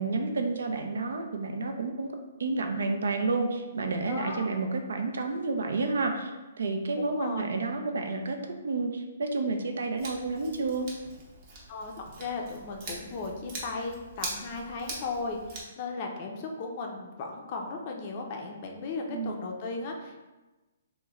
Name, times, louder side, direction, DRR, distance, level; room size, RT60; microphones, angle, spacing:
voice 1, 0.0-2.1 2.4-6.3 6.6-10.9 19.1-19.4, right 3 dB, 80° right, 4 dB, 0.4 m, -30 dB
voice 2, 4.0-4.5 7.1-7.5 11.7-20.2, left 3 dB, 35° left, 1 dB, 0.4 m, -36 dB
Scissors, 10.0-15.6, right 2 dB, 30° right, 0.7 m, -42 dB
3.0 x 2.1 x 3.5 m, 1.1 s
hypercardioid pair, 165°, 0 cm